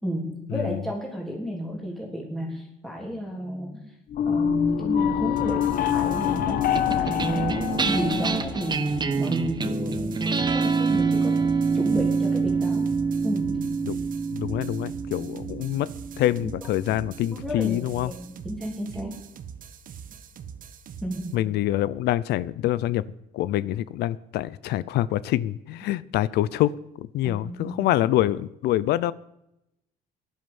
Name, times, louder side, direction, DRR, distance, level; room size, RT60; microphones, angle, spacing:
voice 1, 0.0-3.9 4.2-10.3 10.5-11.4 11.7-12.9 13.2-13.7 16.4-16.5 17.3-19.2 21.0-21.5 27.2-27.9, equal, ahead, -1 dB, 3.4 m, -33 dB
sound 1, 4.1-9.2, left 9 dB, 60° left, 1.2 m, -25 dB
sound 2, 5.4-21.4, right 7 dB, 55° right, 1.4 m, -43 dB
sound 3, 6.7-17.3, right 4 dB, 25° right, 1.2 m, -26 dB
voice 2, 14.3-15.9 16.2-18.1 21.3-23.0 23.3-29.1, left 14 dB, 75° left, 19 dB, 0.6 m, -25 dB
16.0 x 11.5 x 7.0 m, 0.84 s
cardioid pair, 110°, 17 cm